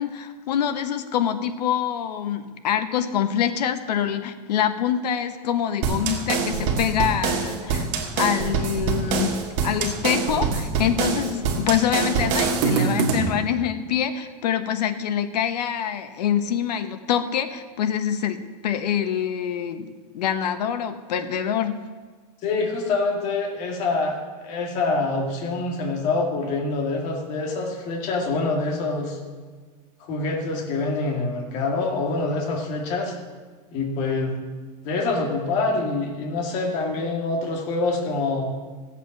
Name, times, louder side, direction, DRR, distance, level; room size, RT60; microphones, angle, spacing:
voice 1, 0.0-7.9 8.2-21.8, left 9 dB, 90° left, 9 dB, 1.1 m, -25 dB
sound 1, 5.8-13.3, right 5 dB, 45° right, 1.7 m, -24 dB
voice 2, 22.4-29.2 30.0-33.1 33.7-34.4 34.8-38.5, left 3 dB, 35° left, 0 dB, 1.9 m, -25 dB
15.0 x 8.1 x 5.9 m, 1.5 s
supercardioid pair, 165°, 20 cm